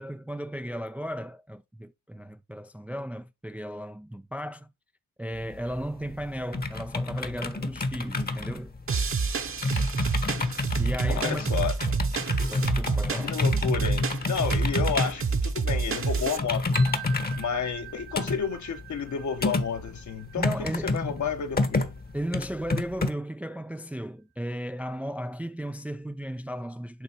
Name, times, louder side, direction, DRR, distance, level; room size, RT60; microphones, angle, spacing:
voice 1, 0.0-4.7 5.2-8.7 10.8-11.5 12.5-13.4 20.4-21.1 22.1-27.0, equal, 5° right, 0.5 m, -35 dB
sound 1, 5.3-23.1, left 2 dB, 25° left, 1.1 m, -30 dB
sound 2, 8.9-16.4, right 4 dB, 35° right, 1.1 m, -28 dB
voice 2, 11.1-11.7 13.2-16.8 17.4-20.5 20.9-21.9, left 6 dB, 50° left, 1.2 m, -31 dB
sound 3, 16.7-22.7, right 16 dB, 60° right, 1.0 m, -46 dB
8.3 x 3.3 x 4.5 m
supercardioid pair, 60°, 36 cm